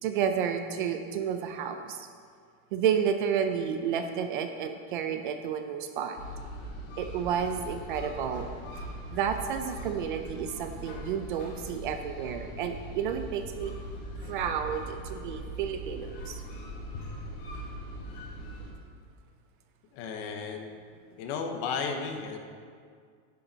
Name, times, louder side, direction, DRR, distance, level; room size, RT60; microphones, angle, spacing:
voice 1, 0.0-2.1 2.7-6.2 7.0-8.5 9.1-13.7 14.3-16.4, right 8 dB, 40° right, 7 dB, 0.5 m, -31 dB
sound 1, 6.2-18.7, equal, 60° left, 3.1 m, -41 dB
voice 2, 19.9-20.7 21.2-22.4, left 5 dB, 30° left, 5 dB, 0.8 m, -34 dB
12.5 x 10.5 x 3.9 m, 2.1 s
supercardioid pair, 175°, 42 cm